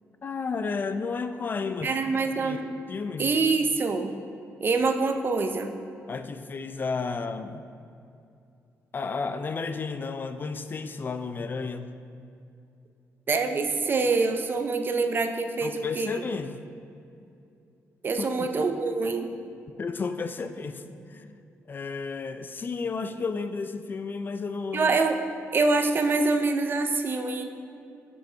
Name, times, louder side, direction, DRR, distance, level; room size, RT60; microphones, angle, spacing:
voice 1, 0.2-2.0 2.4-2.6 2.9-3.3 6.1-7.6 8.9-11.9 15.6-16.6 18.2-18.5 19.8-21.4 21.7-24.9, left 4 dB, 35° left, 9 dB, 0.3 m, -32 dB
voice 2, 1.8-2.7 3.2-4.1 4.6-5.7 13.3-16.1 18.0-19.3 24.7-25.2 25.5-27.5, right 3 dB, 40° right, 7 dB, 0.5 m, -25 dB
6.3 x 5.2 x 4.5 m, 2.6 s
cardioid pair, 105°, 6 cm